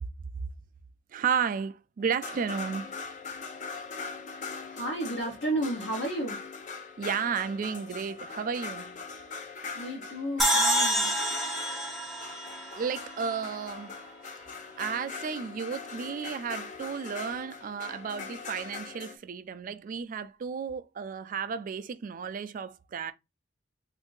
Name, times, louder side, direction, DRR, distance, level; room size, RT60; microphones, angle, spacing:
voice 1, 1.1-2.8 7.0-9.0 12.7-14.0 14.8-23.1, right 6 dB, 45° right, 0.3 m, -33 dB
sound 1, 2.0-19.2, left 4 dB, 40° left, 0.5 m, -41 dB
voice 2, 4.7-6.4 9.4-11.1, right 1 dB, 65° left, 0.9 m, -33 dB
sound 2, 10.4-13.7, equal, ahead, 0.6 m, -28 dB
2.7 x 2.5 x 3.8 m
head